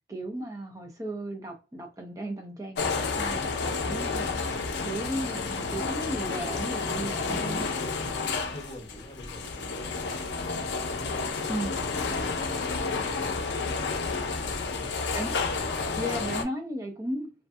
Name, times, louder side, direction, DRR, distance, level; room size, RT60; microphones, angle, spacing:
voice 1, 0.1-3.4 3.7-4.5 4.8-7.7 11.5-11.9 15.1-15.4 16.0-17.3, right 1 dB, 20° right, 0.5 m, -35 dB
sound 1, 2.8-16.4, left 4 dB, 65° left, 0.5 m, -30 dB
voice 2, 8.5-10.6 11.0-12.6, left 1 dB, 30° left, 0.9 m, -47 dB
2.5 x 2.4 x 2.3 m
head